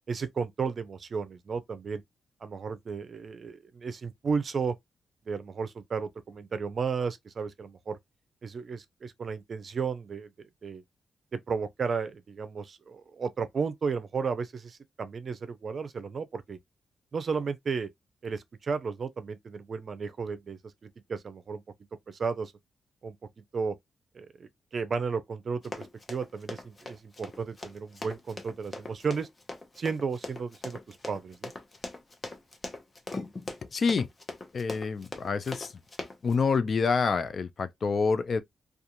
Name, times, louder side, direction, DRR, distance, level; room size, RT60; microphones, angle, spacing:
voice 1, 0.1-2.0 2.4-4.8 5.3-8.0 8.4-10.3 10.6-10.8 11.3-16.6 17.1-17.9 18.2-21.6 22.1-22.5 23.0-23.2 23.5-23.8 24.1-29.3 29.8-31.5, right 5 dB, 50° right, 0.5 m, -33 dB
Run, 25.6-36.3, left 2 dB, 30° left, 0.8 m, -40 dB
voice 2, 33.7-34.1 34.5-35.7 36.2-38.4, left 5 dB, 50° left, 0.5 m, -27 dB
2.4 x 2.4 x 2.8 m
cardioid pair, 85°, 0 cm